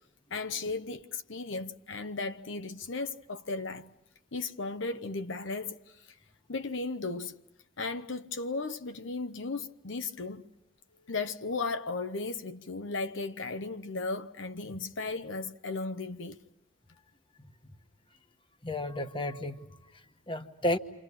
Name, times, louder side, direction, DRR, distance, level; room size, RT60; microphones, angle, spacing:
voice 1, 0.3-3.9 4.3-6.1 6.5-7.4 7.8-10.4 11.1-16.4, left 3 dB, 70° left, 1.0 m, -35 dB
voice 2, 18.6-20.8, left 1 dB, 25° left, 1.2 m, -33 dB
29.0 x 27.0 x 5.9 m
head